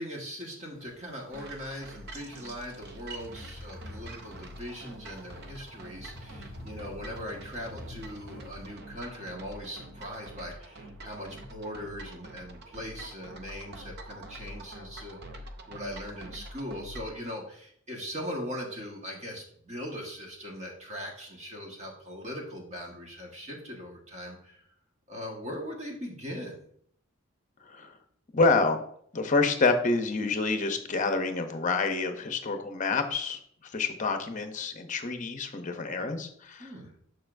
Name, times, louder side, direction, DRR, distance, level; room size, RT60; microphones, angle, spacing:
voice 1, 0.0-15.2 15.7-24.6 25.1-26.7 36.6-36.9, equal, 35° right, 0 dB, 1.5 m, -40 dB
sound 1, 0.7-8.7, left 1 dB, 15° right, 2.2 m, -49 dB
sound 2, 1.3-17.2, right 1 dB, 50° right, 0.6 m, -46 dB
voice 2, 27.6-28.0 28.3-28.8 29.1-36.7, left 3 dB, 35° left, 7 dB, 0.7 m, -28 dB
6.8 x 6.3 x 2.6 m, 0.65 s
head